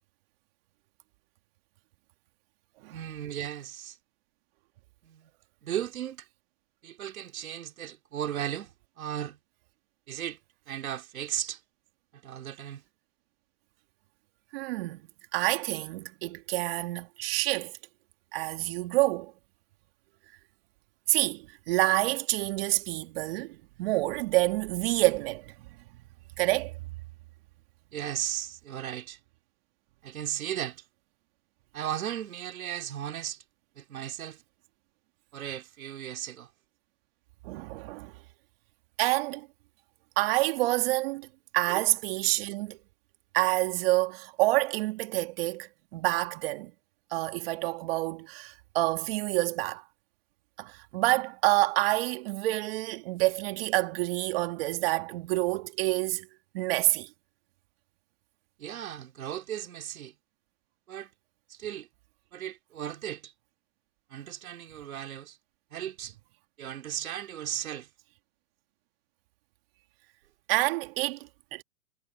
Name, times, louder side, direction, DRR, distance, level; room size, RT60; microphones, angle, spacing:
voice 1, 2.9-4.0 5.0-5.3 5.6-6.3 6.8-9.4 10.1-10.4 10.7-11.6 12.1-12.8 27.9-29.2 30.0-30.8 31.7-33.4 33.8-34.4 35.3-36.5 41.7-41.8 58.6-60.1 60.9-61.1 61.5-61.9 62.3-63.3 64.1-65.4 65.7-66.1 66.6-67.9, right 11 dB, 65° right, 3.4 m, -36 dB
voice 2, 14.5-15.0 15.3-17.7 18.3-19.3 21.1-25.5 26.4-26.7 37.4-38.1 39.0-39.5 40.2-41.3 41.5-42.8 43.3-46.7 47.1-49.8 50.6-56.3 56.5-57.1 70.5-71.6, right 20 dB, 40° right, 2.6 m, -28 dB
hypercardioid pair, 150°, 44 cm